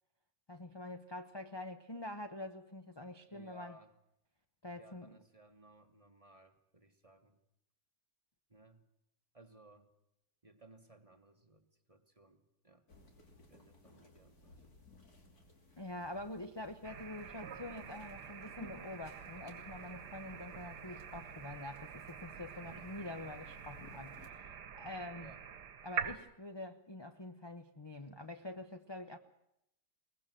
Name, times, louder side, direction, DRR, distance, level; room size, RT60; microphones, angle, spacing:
voice 1, 0.5-3.8 4.6-5.2 15.8-24.5 24.8-25.3 25.8-29.2, left 1 dB, 20° left, 5 dB, 0.7 m, -46 dB
voice 2, 3.3-3.9 4.8-7.4 8.5-8.8 9.3-9.9 10.4-12.8 13.5-14.6 22.7-23.0 25.2-25.4, right 1 dB, 20° right, 6 dB, 1.5 m, -61 dB
Black Iberian Pigs Eating, 12.9-24.3, left 2 dB, 55° left, 3.4 m, -59 dB
sound 1, 16.8-26.2, right 8 dB, 70° right, 1.7 m, -46 dB
22.0 x 19.5 x 7.6 m, 0.81 s
omnidirectional pair, 1.9 m